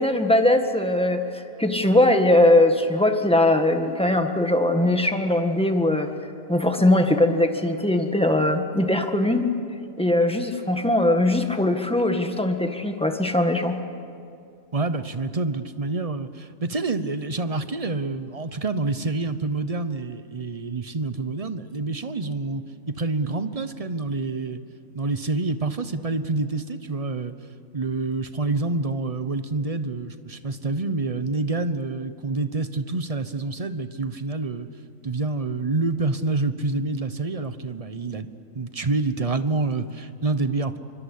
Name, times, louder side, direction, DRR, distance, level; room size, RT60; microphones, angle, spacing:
voice 1, 0.0-6.1 6.5-9.5 10.0-13.8, left 1 dB, 5° left, 5 dB, 1.6 m, -20 dB
voice 2, 14.7-22.6 22.9-24.6 24.9-27.3 27.7-34.7 35.0-38.3 38.5-40.8, right 3 dB, 30° right, 11 dB, 0.9 m, -27 dB
25.0 x 24.5 x 8.5 m, 2.4 s
omnidirectional pair, 1.4 m